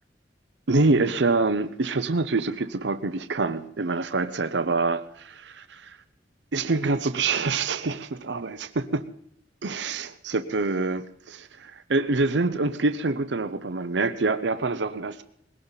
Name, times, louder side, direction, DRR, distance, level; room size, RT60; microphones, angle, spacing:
voice 1, 0.7-6.0 6.5-9.0 9.6-15.2, right 3 dB, 85° right, 0.8 m, -26 dB
20.5 x 17.5 x 4.1 m
head